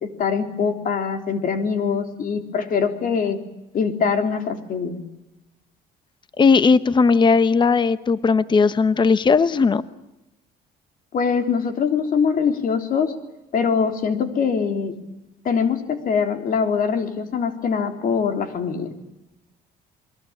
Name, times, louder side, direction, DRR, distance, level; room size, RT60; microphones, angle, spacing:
voice 1, 0.0-3.4 3.7-5.0 11.1-13.1 13.5-15.0 15.4-18.9, left 6 dB, 55° left, 7 dB, 3.6 m, -23 dB
voice 2, 6.4-9.8, left 4 dB, 25° left, 14 dB, 1.0 m, -17 dB
27.5 x 22.0 x 8.8 m, 0.94 s
cardioid pair, 110°, 17 cm